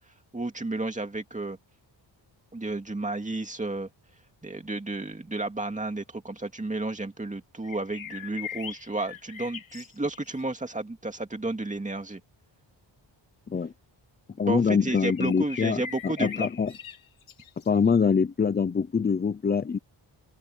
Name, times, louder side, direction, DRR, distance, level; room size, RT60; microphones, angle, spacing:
voice 1, 0.3-1.6 2.5-3.9 4.4-12.2 14.4-16.5, right 2 dB, 15° right, 2.3 m, -32 dB
sound 1, 7.6-10.4 14.9-18.0, left 8 dB, 80° left, 4.3 m, -41 dB
voice 2, 14.4-16.7 17.7-19.8, left 6 dB, 20° left, 0.5 m, -24 dB
wide cardioid pair, 150°, 47 cm